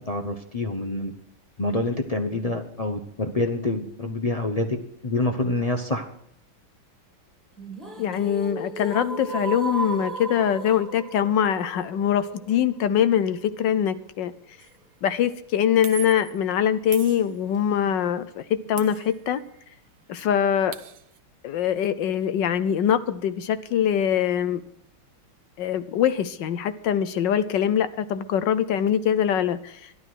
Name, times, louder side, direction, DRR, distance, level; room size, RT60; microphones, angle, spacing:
voice 1, 0.1-1.1 1.6-4.8 5.0-6.1, left 2 dB, 35° left, 5 dB, 0.6 m, -26 dB
sound 1, 7.6-13.6, right 2 dB, ahead, 2.0 m, -35 dB
voice 2, 8.0-14.3 15.0-19.4 20.1-20.8 21.4-24.6 25.6-29.9, left 9 dB, 70° left, 13 dB, 1.2 m, -23 dB
sound 2, 14.6-14.8 15.8-16.4 16.9-17.8 18.8-19.6 19.9-20.0 20.3-21.2, right 11 dB, 65° right, 1.3 m, -40 dB
12.0 x 12.0 x 6.2 m, 0.71 s
omnidirectional pair, 2.4 m